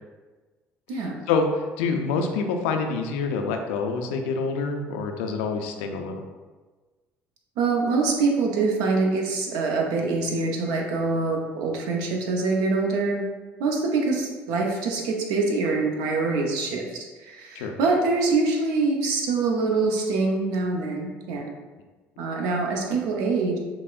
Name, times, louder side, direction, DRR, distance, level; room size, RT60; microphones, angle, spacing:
voice 1, 0.9-1.2 7.6-13.2 13.6-21.5 22.2-23.6, right 3 dB, 70° right, 1 dB, 0.6 m, -25 dB
voice 2, 1.8-6.2 17.5-17.8, left 4 dB, 80° left, 4 dB, 0.4 m, -26 dB
5.7 x 2.0 x 2.4 m, 1.3 s
hypercardioid pair, 60°, 7 cm